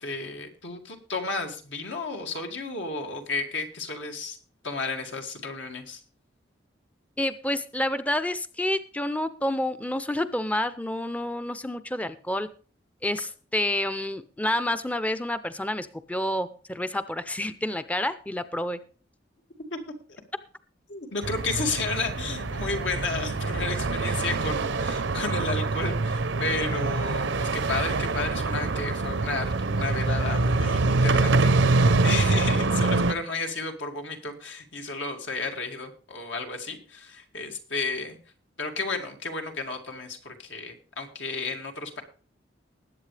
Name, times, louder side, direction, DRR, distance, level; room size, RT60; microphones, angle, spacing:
voice 1, 0.0-4.4 4.6-6.0 19.7-19.8 20.9-38.2 38.6-42.0, left 3 dB, 85° left, 3 dB, 2.3 m, -33 dB
voice 2, 7.2-12.5 13.0-18.8, left 1 dB, 10° left, 12 dB, 0.5 m, -29 dB
sound 1, 21.2-33.1, right 3 dB, 85° right, 0.7 m, -25 dB
20.0 x 8.2 x 3.3 m, 0.41 s
head